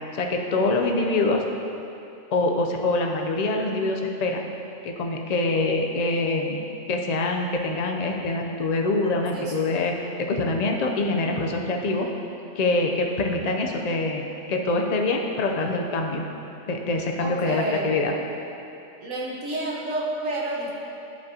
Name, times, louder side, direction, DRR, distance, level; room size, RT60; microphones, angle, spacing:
voice 1, 0.1-1.4 2.3-4.4 4.8-9.9 10.2-12.1 12.6-16.3 16.7-18.1, left 2 dB, 45° left, 2 dB, 0.5 m, -25 dB
voice 2, 9.3-9.7 17.2-18.0 19.0-20.7, right 2 dB, 80° right, -3 dB, 1.5 m, -30 dB
11.0 x 5.3 x 2.8 m, 2.9 s
omnidirectional pair, 1.3 m